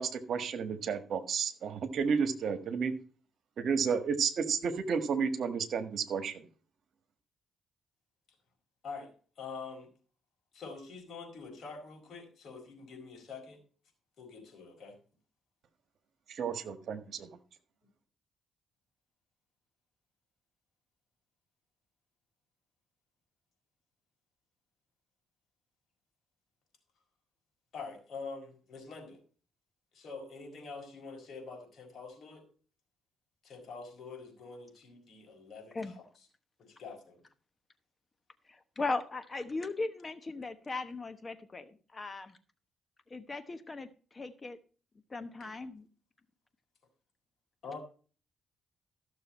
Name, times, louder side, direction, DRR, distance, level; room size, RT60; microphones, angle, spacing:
voice 1, 0.0-2.9 3.6-6.4 16.3-17.3, right 6 dB, 60° right, 11 dB, 1.6 m, -32 dB
voice 2, 9.4-9.9 10.5-13.6 14.2-15.0 27.7-29.2 29.9-32.4 33.4-36.3 36.6-37.2 45.4-45.6 47.6-47.8, left 4 dB, 55° left, 2 dB, 4.6 m, -46 dB
voice 3, 38.5-42.3 43.1-43.9 44.1-44.6 45.1-45.8, left 3 dB, 30° left, 11 dB, 1.1 m, -38 dB
14.0 x 6.8 x 4.3 m, 0.39 s
cardioid pair, 90°, 0 cm